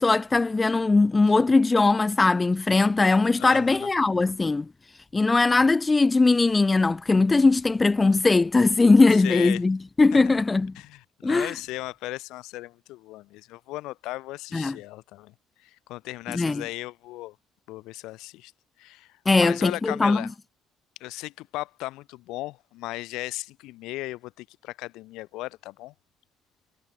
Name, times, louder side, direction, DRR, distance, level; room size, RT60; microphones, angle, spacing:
voice 1, 0.0-4.7 5.1-10.7 11.2-11.5 14.5-14.8 16.3-16.6 19.3-20.2, left 3 dB, 15° left, 0.5 m, -20 dB
voice 2, 3.4-3.9 9.1-9.6 10.1-10.3 10.8-15.3 15.6-17.4 17.7-18.5 18.8-20.3 21.0-25.9, left 18 dB, 80° left, 1.9 m, -36 dB
cardioid pair, 170°, 0 cm